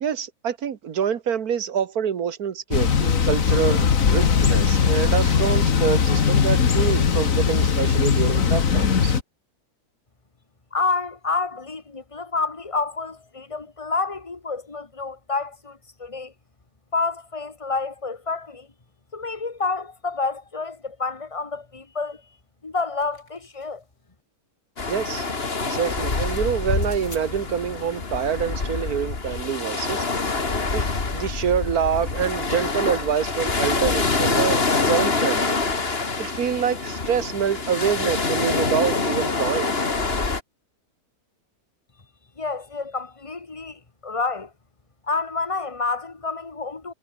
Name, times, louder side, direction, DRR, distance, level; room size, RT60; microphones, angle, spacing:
voice 1, 0.0-9.1 24.9-25.3 25.6-30.0 30.7-35.6 36.2-39.8, right 8 dB, 85° right, 1.8 m, -26 dB
Thunder / Bicycle, 2.7-9.2, left 6 dB, 60° left, 1.9 m, -19 dB
voice 2, 10.7-16.3 16.9-18.7 19.1-22.2 22.6-23.8 42.4-44.5 45.1-46.9, left 4 dB, 20° left, 1.8 m, -29 dB
sound 1, 22.6-23.9 26.7-27.3, left 2 dB, 80° left, 7.7 m, -47 dB
sound 2, 24.8-40.4, left 3 dB, 40° left, 2.4 m, -25 dB
omnidirectional pair, 1.6 m